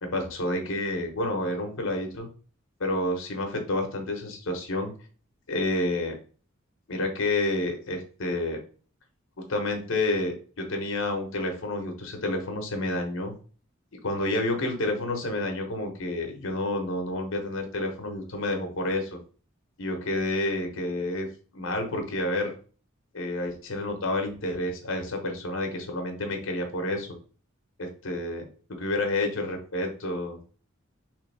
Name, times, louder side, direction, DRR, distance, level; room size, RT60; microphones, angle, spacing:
voice 1, 0.0-2.3 2.8-4.9 5.5-6.2 6.9-8.6 9.5-13.3 14.0-19.2 19.8-21.3 21.5-22.5 23.1-27.2 27.8-30.4, left 2 dB, 75° left, 4 dB, 1.0 m, -29 dB
3.4 x 3.3 x 3.3 m, 0.40 s
head